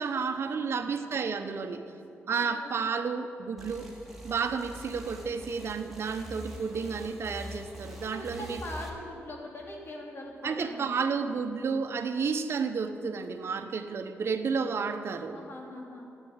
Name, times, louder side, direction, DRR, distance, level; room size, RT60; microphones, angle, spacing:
voice 1, 0.0-1.8 2.3-3.9 4.2-8.6 10.4-15.4, right 5 dB, 60° right, 7 dB, 0.9 m, -31 dB
voice 2, 2.3-2.9 8.0-11.1 15.3-16.1, left 1 dB, 50° left, -1 dB, 3.4 m, -42 dB
sound 1, 3.6-8.9, equal, 5° right, 2.9 m, -44 dB
13.0 x 9.0 x 9.9 m, 2.9 s
cardioid pair, 100°, 5 cm